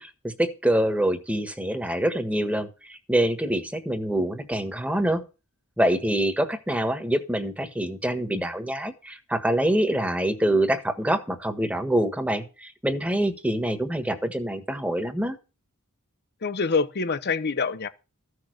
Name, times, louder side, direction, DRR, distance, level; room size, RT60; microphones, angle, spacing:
voice 1, 0.0-5.2 5.8-15.4, right 1 dB, 5° right, 1.5 m, -25 dB
voice 2, 16.4-17.9, left 4 dB, 50° left, 0.8 m, -25 dB
14.5 x 6.6 x 6.4 m
head